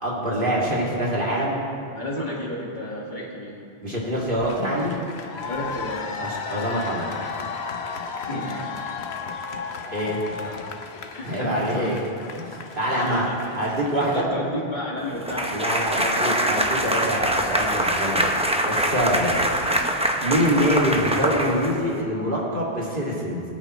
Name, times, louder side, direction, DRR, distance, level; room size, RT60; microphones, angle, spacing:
voice 1, 0.0-1.6 3.8-5.0 6.2-7.1 9.9-10.2 11.2-12.0 12.4-13.2 13.6-14.2 15.5-18.4 18.6-19.4 20.2-23.4, equal, 55° right, -5 dB, 2.6 m, -25 dB
voice 2, 2.0-3.6 5.4-6.2 8.3-8.8 10.4-10.6 11.1-12.0 12.9-16.3 19.7-19.8, left 1 dB, 50° left, -3 dB, 2.0 m, -32 dB
sound 1, 4.4-14.2, left 5 dB, 85° left, 1.1 m, -34 dB
sound 2, 15.2-22.0, right 1 dB, 5° right, 0.7 m, -24 dB
sound 3, 15.8-21.8, left 1 dB, 30° left, 2.4 m, -44 dB
22.5 x 8.9 x 3.2 m, 2.6 s
omnidirectional pair, 1.0 m